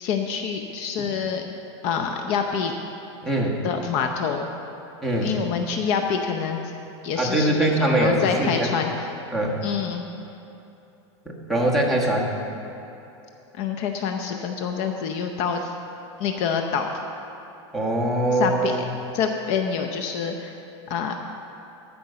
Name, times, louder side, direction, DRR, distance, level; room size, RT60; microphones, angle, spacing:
voice 1, 0.0-1.4 1.8-2.7 3.6-4.5 5.2-6.6 7.0-9.1 9.6-10.0 13.5-15.8 16.2-17.0 18.3-18.8 19.1-20.5 20.9-21.2, left 6 dB, 45° left, 4 dB, 0.7 m, -26 dB
voice 2, 3.2-3.6 5.0-5.3 7.2-8.7 9.3-9.6 11.3-12.3 17.7-18.8, right 1 dB, ahead, -3 dB, 1.4 m, -22 dB
13.5 x 5.4 x 6.8 m, 2.8 s
supercardioid pair, 145°, 15 cm